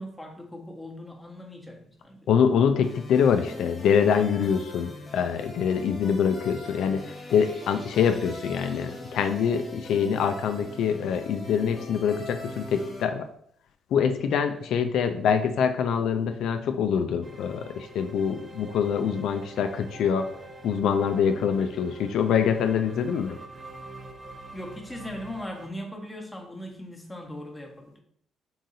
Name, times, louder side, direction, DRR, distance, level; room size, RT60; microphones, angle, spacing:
voice 1, 0.0-2.3 24.5-28.0, equal, 10° left, 1 dB, 0.9 m, -39 dB
voice 2, 2.3-7.0 7.3-13.3 13.9-20.3 20.6-23.4, left 7 dB, 80° left, 8 dB, 0.3 m, -25 dB
sound 1, 2.8-13.0, left 1 dB, 35° left, 1.2 m, -42 dB
sound 2, 17.2-25.7, right 2 dB, 30° right, 0.6 m, -46 dB
3.8 x 2.6 x 3.9 m, 0.67 s
cardioid pair, 90°, 0 cm